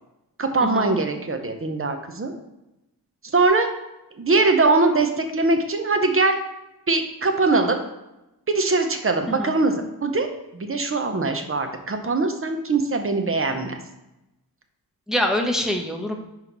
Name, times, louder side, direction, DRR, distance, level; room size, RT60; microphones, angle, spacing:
voice 1, 0.4-2.3 3.3-3.7 4.2-6.4 6.9-7.8 8.5-9.7 10.0-10.3 10.5-13.7, right 3 dB, 35° right, 6 dB, 0.8 m, -21 dB
voice 2, 15.1-16.2, left 1 dB, ahead, 1 dB, 0.8 m, -24 dB
5.6 x 4.5 x 4.0 m, 0.93 s
wide cardioid pair, 100°, 39 cm